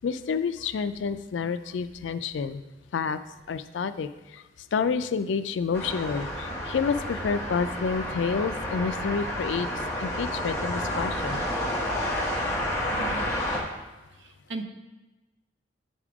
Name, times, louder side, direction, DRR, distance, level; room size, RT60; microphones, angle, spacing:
voice 1, 0.0-2.6 2.9-3.2 3.5-4.4 4.7-9.7 10.0-11.4, left 5 dB, 90° left, 12 dB, 0.4 m, -29 dB
sound 1, 5.7-13.6, equal, 15° left, 1.2 m, -30 dB
voice 2, 12.9-13.2 14.2-14.6, right 3 dB, 75° right, 6 dB, 0.7 m, -37 dB
9.1 x 3.6 x 4.8 m, 1.1 s
head